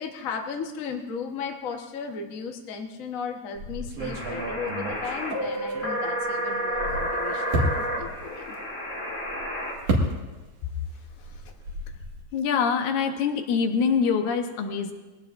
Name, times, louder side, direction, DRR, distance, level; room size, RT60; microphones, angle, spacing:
voice 1, 0.0-8.5, left 5 dB, 50° left, 2 dB, 0.9 m, -35 dB
sound 1, 3.6-6.3 6.6-10.7 10.9-12.2, right 1 dB, 85° right, 3.4 m, -31 dB
sound 2, 4.0-9.7, equal, 20° left, 2.9 m, -30 dB
voice 2, 12.3-14.9, left 6 dB, 85° left, 5 dB, 2.5 m, -24 dB
22.0 x 17.0 x 2.6 m, 1.2 s
omnidirectional pair, 3.3 m